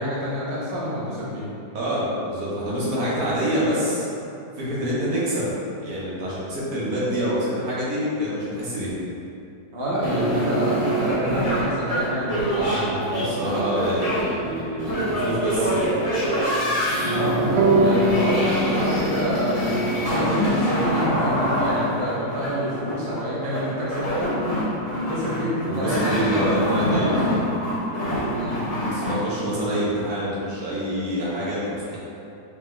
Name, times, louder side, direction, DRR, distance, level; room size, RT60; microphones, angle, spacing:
voice 1, 0.0-1.4 9.7-13.2 17.1-26.4 28.3-28.6, equal, 45° right, -8 dB, 1.0 m, -27 dB
voice 2, 1.7-4.1 4.6-8.9 13.1-15.9 25.6-27.3 28.8-32.0, equal, 65° right, -8 dB, 1.4 m, -26 dB
sound 1, 10.0-29.1, right 1 dB, 25° left, 1.3 m, -25 dB
sound 2, 17.6-20.8, right 1 dB, 80° right, 0.6 m, -25 dB
4.9 x 4.0 x 2.2 m, 2.7 s
omnidirectional pair, 1.8 m